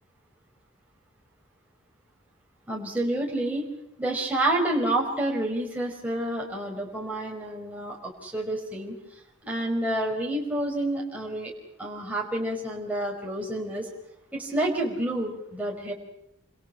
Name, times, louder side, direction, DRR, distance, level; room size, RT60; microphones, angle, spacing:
voice 1, 2.7-3.7 4.0-8.9 9.4-11.5 11.8-13.9 14.3-15.9, right 1 dB, 5° right, -2 dB, 5.0 m, -29 dB
28.0 x 27.0 x 5.8 m, 0.81 s
head